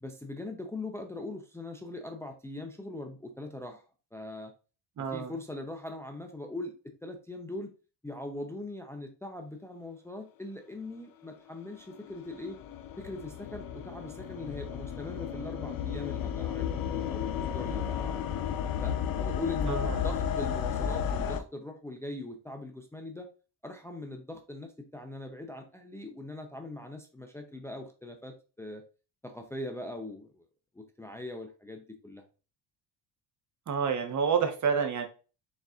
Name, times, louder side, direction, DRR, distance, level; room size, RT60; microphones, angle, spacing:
voice 1, 0.0-3.8 4.1-4.5 5.0-6.7 7.0-7.7 8.0-12.6 13.0-18.2 18.8-23.3 23.6-28.8 29.2-30.4 30.7-32.2, left 2 dB, 5° left, 3 dB, 0.5 m, -41 dB
voice 2, 5.0-5.3 19.7-19.9 33.7-35.1, right 6 dB, 45° right, 6 dB, 1.0 m, -28 dB
sound 1, 11.7-21.4, left 8 dB, 55° left, 0.6 m, -33 dB
4.1 x 3.9 x 2.4 m, 0.34 s
cardioid pair, 95°, 42 cm